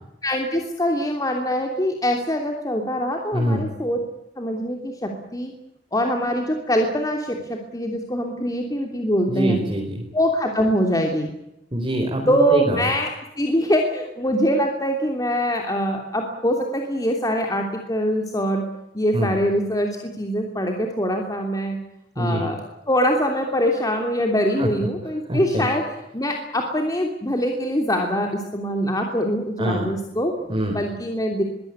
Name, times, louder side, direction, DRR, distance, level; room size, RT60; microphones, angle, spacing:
voice 1, 0.2-4.0 4.4-5.5 5.9-9.6 10.1-11.3 12.3-18.6 18.9-21.8 22.2-25.8 26.1-30.3 30.7-31.4, equal, 20° left, 2 dB, 3.0 m, -23 dB
voice 2, 3.3-3.7 9.3-10.0 11.7-12.8 19.1-19.3 22.2-22.5 24.6-24.7 25.3-25.7 29.6-29.9 30.5-30.8, equal, 30° right, -1 dB, 4.7 m, -24 dB
23.0 x 16.5 x 9.6 m, 0.85 s
head